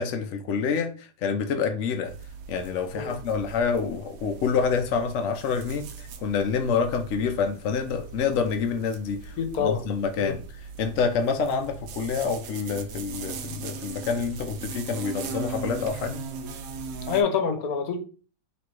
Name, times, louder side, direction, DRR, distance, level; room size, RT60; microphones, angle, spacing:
voice 1, 0.0-2.1 2.5-10.4 10.8-16.2, left 5 dB, 80° left, 0.6 m, -27 dB
sound 1, 2.0-17.2, right 5 dB, 70° right, 0.8 m, -40 dB
voice 2, 9.4-9.8 10.2-10.4 17.1-18.0, left 6 dB, 60° left, 1.1 m, -26 dB
3.1 x 3.0 x 4.6 m
omnidirectional pair, 2.0 m